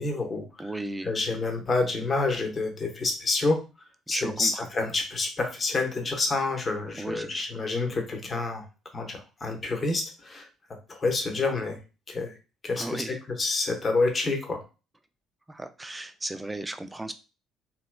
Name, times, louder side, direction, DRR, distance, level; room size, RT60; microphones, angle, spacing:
voice 1, 0.0-0.7 1.0-3.6 4.1-8.6 8.9-10.5 10.9-11.8 12.1-12.3 12.6-14.6, left 3 dB, 30° left, 3 dB, 0.9 m, -28 dB
voice 2, 0.6-1.1 4.1-4.7 7.0-7.5 12.7-13.2 15.5-17.1, right 2 dB, 15° right, 10 dB, 0.4 m, -35 dB
3.1 x 2.9 x 2.2 m, 0.30 s
figure-of-eight pair, 50°, 0 cm